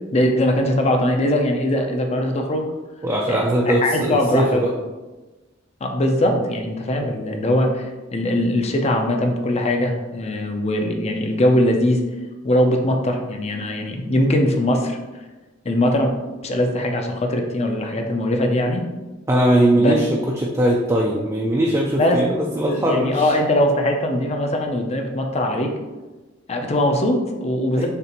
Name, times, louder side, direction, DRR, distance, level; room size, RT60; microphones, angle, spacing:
voice 1, 0.1-2.6 3.3-4.6 5.8-12.0 12.4-15.0 15.6-16.1 16.4-18.8 19.7-19.9 22.0-22.2 22.7-25.7 26.5-27.9, left 1 dB, 35° left, 3 dB, 0.5 m, -21 dB
voice 2, 3.0-4.7 6.3-6.4 19.3-23.3 27.8-27.9, right 1 dB, 15° right, -1 dB, 0.4 m, -20 dB
6.6 x 2.5 x 2.9 m, 1.2 s
head